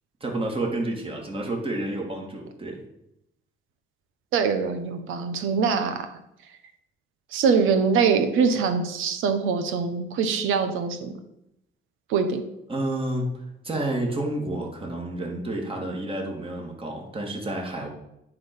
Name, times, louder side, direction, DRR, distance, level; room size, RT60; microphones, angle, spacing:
voice 1, 0.2-2.8 12.7-17.9, right 1 dB, 25° right, 0 dB, 2.8 m, -30 dB
voice 2, 4.3-6.1 7.3-11.1 12.1-12.4, right 5 dB, 90° right, 7 dB, 1.3 m, -23 dB
9.3 x 4.8 x 7.1 m, 0.83 s
cardioid pair, 90°, 20 cm